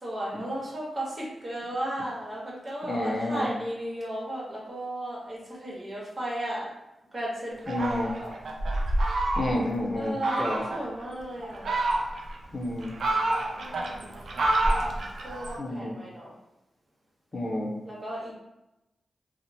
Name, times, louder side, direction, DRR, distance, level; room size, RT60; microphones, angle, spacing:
voice 1, 0.0-6.7 7.1-8.4 9.9-11.7 13.6-14.1 15.2-16.3 17.8-18.3, right 1 dB, 45° right, -5 dB, 1.1 m, -35 dB
voice 2, 2.9-3.5 7.7-8.1 9.4-10.6 12.5-12.9 15.6-15.9 17.3-17.7, left 1 dB, 50° left, -2 dB, 0.6 m, -30 dB
Fowl, 7.7-9.7 10.2-10.8 11.4-12.4 12.8-15.6, right 1 dB, 80° right, 0.4 m, -28 dB
2.8 x 2.1 x 2.6 m, 0.95 s
cardioid pair, 45°, 0 cm